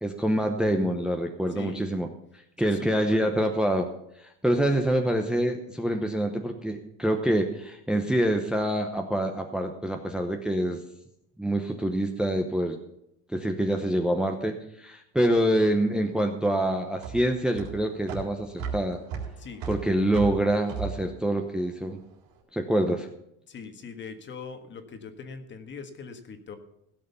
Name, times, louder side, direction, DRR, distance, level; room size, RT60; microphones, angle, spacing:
voice 1, 0.0-2.1 2.6-3.9 4.2-10.8 11.4-12.8 13.3-19.0 19.7-22.0 22.5-23.1, right 1 dB, ahead, 3 dB, 0.9 m, -26 dB
voice 2, 1.5-1.8 2.6-3.3 19.4-19.6 23.5-26.6, left 5 dB, 30° left, 8 dB, 1.6 m, -41 dB
sound 1, 15.7-22.2, right 6 dB, 80° right, 3.7 m, -37 dB
16.0 x 6.5 x 6.9 m, 0.79 s
cardioid pair, 135°, 36 cm